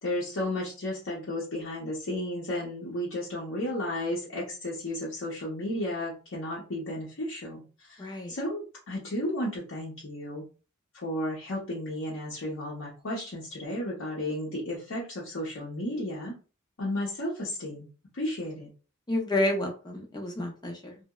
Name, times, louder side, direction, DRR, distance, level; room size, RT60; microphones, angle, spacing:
voice 1, 0.0-10.5 10.9-16.3 16.8-17.9 18.1-18.7, left 1 dB, 65° left, -5 dB, 0.7 m, -33 dB
voice 2, 8.0-8.3 19.1-21.0, left 1 dB, 20° left, 2 dB, 0.6 m, -30 dB
2.8 x 2.0 x 2.2 m, 0.35 s
head